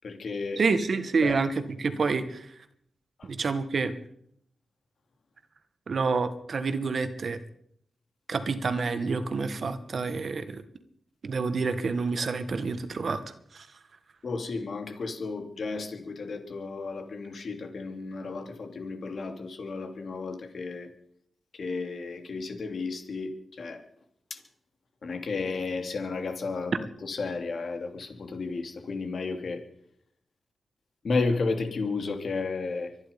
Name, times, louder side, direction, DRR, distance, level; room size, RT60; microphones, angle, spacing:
voice 1, 0.0-0.6 1.2-1.4 3.2-3.3 14.2-20.9 21.5-23.8 24.3-24.4 25.0-26.7 27.0-29.6 31.0-32.9, left 4 dB, 65° left, 2.9 m, -33 dB
voice 2, 0.6-2.5 3.2-3.9 5.9-7.4 8.3-10.6 11.2-13.2 13.5-13.7, right 4 dB, 60° right, 1.6 m, -28 dB
24.0 x 11.0 x 5.3 m
wide cardioid pair, 90°, 0 cm